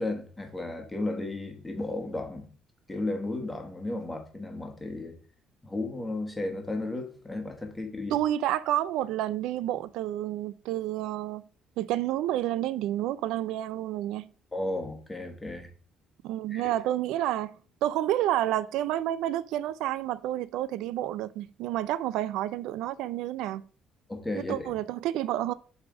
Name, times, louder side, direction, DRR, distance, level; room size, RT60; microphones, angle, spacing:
voice 1, 0.0-2.5 2.9-5.2 5.6-8.2 14.5-15.7 16.5-16.7 24.1-24.7, left 2 dB, 10° left, 1.3 m, -34 dB
voice 2, 8.1-11.4 11.8-14.3 16.2-17.5 17.8-23.7 24.5-25.5, right 13 dB, 90° right, 0.3 m, -29 dB
7.0 x 3.3 x 4.9 m
cardioid pair, 140°, 0 cm